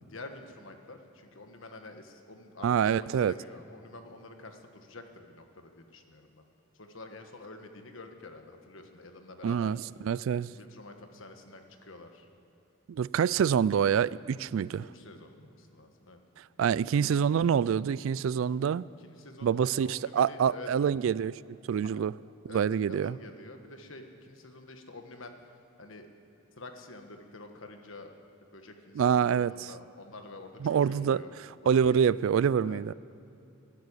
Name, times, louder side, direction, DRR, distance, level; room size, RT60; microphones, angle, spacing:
voice 1, 0.0-6.4 6.7-9.8 10.5-12.3 14.8-16.2 16.6-16.7 19.0-20.7 21.9-22.0 22.5-25.3 25.8-26.1 26.6-28.1 28.4-31.3 31.6-32.0 32.6-32.8, left 2 dB, 65° left, 5 dB, 1.5 m, -48 dB
voice 2, 2.6-3.3 9.4-10.5 12.9-14.9 16.6-18.8 19.4-21.4 21.7-22.1 22.4-23.2 29.0-29.5 30.6-31.2 31.7-32.9, right 7 dB, 65° right, 21 dB, 0.3 m, -26 dB
12.0 x 11.5 x 9.9 m, 2.8 s
head